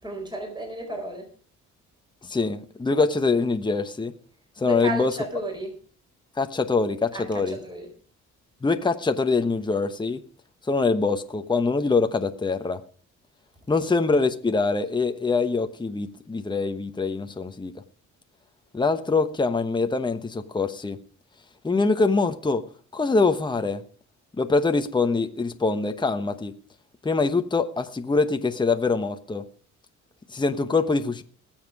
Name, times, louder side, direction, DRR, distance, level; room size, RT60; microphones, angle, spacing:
voice 1, 0.0-1.3 4.6-5.7 7.1-7.9, right 1 dB, 15° right, 4.4 m, -33 dB
voice 2, 2.3-4.1 4.6-5.1 6.4-7.6 8.6-10.2 10.7-12.8 13.7-17.7 18.7-21.0 21.6-22.6 22.9-23.8 24.4-26.5 27.0-29.4 30.3-31.2, left 4 dB, 15° left, 1.1 m, -24 dB
20.5 x 7.5 x 4.8 m
cardioid pair, 90°, 30 cm